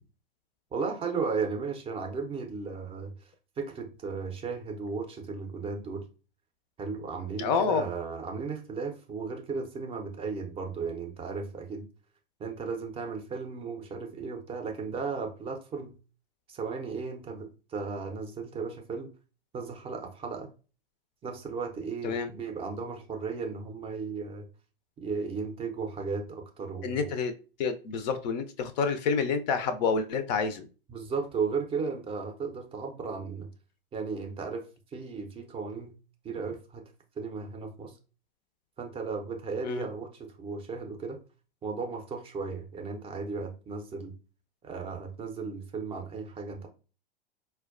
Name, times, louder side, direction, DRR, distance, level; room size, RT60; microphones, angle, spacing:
voice 1, 0.7-3.3 3.6-6.0 6.8-11.9 12.4-15.9 16.5-19.1 19.5-20.5 21.2-24.4 25.0-27.1 30.9-33.5 33.9-35.9 36.2-36.8 37.2-38.0 38.8-41.2 41.6-44.1 44.6-46.7, right 4 dB, 20° right, 4 dB, 0.5 m, -35 dB
voice 2, 7.4-7.9 22.0-22.3 26.8-27.3 27.6-30.7 39.6-39.8, left 5 dB, 45° left, 10 dB, 0.4 m, -28 dB
4.4 x 2.2 x 2.4 m, 0.35 s
figure-of-eight pair, 95°, 30 cm